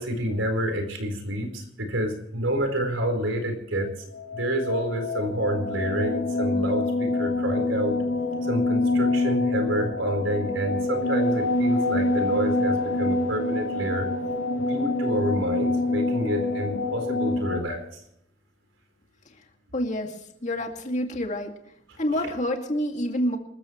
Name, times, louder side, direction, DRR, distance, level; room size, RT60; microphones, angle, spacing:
voice 1, 0.0-3.9 4.3-8.0 8.5-14.1 14.7-18.0, right 1 dB, 85° right, 5 dB, 4.3 m, -28 dB
sound 1, 4.2-17.6, left 2 dB, 85° left, 6.1 m, -26 dB
voice 2, 19.7-21.5 22.0-23.4, left 1 dB, 40° left, 3 dB, 2.2 m, -28 dB
27.0 x 14.0 x 3.1 m, 0.75 s
head